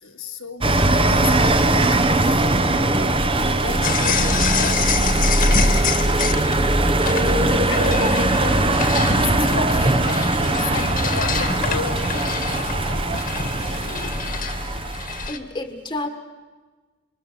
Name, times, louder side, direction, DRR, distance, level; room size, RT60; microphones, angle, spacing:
voice 1, 0.0-2.5 3.0-3.1 3.5-5.5 7.0-8.7 9.0-13.0 13.5-14.2 14.7-14.8, left 4 dB, 70° left, 3 dB, 1.8 m, -34 dB
sound 1, 0.6-15.3, right 2 dB, 25° right, 1.2 m, -20 dB
sound 2, 3.3-4.1 4.4-4.5 5.1-14.0, right 2 dB, 70° right, 5.8 m, -43 dB
sound 3, 3.8-15.4, left 6 dB, 40° left, 1.7 m, -27 dB
voice 2, 6.5-6.9 10.5-10.9 13.0-13.4 13.9-14.1 14.5-15.0 15.3-16.1, left 2 dB, 20° left, 6 dB, 1.6 m, -34 dB
27.0 x 25.0 x 7.0 m, 1.3 s
head